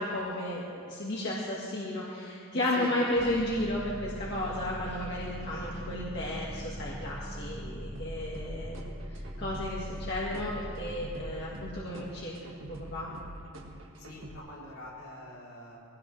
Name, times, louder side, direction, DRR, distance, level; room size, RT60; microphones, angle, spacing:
voice 1, 0.0-8.8 9.1-13.1, left 1 dB, 50° left, -6 dB, 2.0 m, -33 dB
voice 2, 2.5-3.0 14.0-15.8, left 1 dB, 85° left, -5 dB, 3.9 m, -44 dB
sound 1, 3.1-11.8, equal, 5° right, 1.0 m, -41 dB
sound 2, 7.9-14.3, right 1 dB, 65° right, 1.9 m, -45 dB
23.0 x 17.5 x 3.4 m, 2.6 s
head